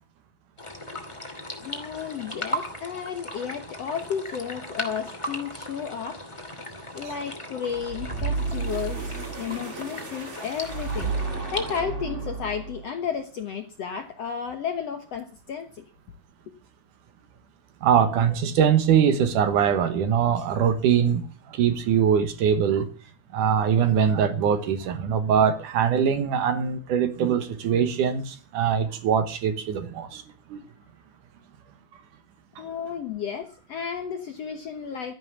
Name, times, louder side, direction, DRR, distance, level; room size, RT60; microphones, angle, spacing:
sound 1, 0.6-11.8, equal, 10° left, 1.9 m, -37 dB
voice 1, 1.6-6.2 6.9-11.1 11.5-15.8 32.6-35.1, left 7 dB, 65° left, 7 dB, 1.7 m, -33 dB
sound 2, 7.7-13.0, right 4 dB, 25° right, 1.6 m, -32 dB
voice 2, 17.8-21.2 21.5-22.9 23.3-30.2 30.5-30.6, right 8 dB, 65° right, 10 dB, 2.4 m, -22 dB
13.0 x 11.0 x 7.2 m, 0.39 s
omnidirectional pair, 4.3 m